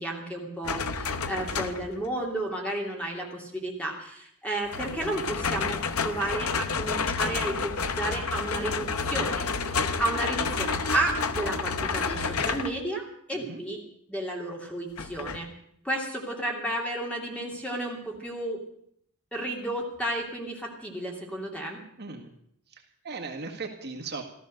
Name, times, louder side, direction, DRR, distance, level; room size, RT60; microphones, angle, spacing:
voice 1, 0.0-13.8 14.1-15.5 15.8-18.6 19.3-21.8, right 1 dB, 5° left, 0 dB, 2.8 m, -32 dB
sound 1, 0.6-2.0 4.7-12.8 15.0-15.4, left 5 dB, 75° left, 0.9 m, -30 dB
voice 2, 22.0-22.3 22.7-24.2, right 4 dB, 50° right, 1 dB, 1.8 m, -38 dB
14.5 x 13.5 x 6.5 m, 0.68 s
head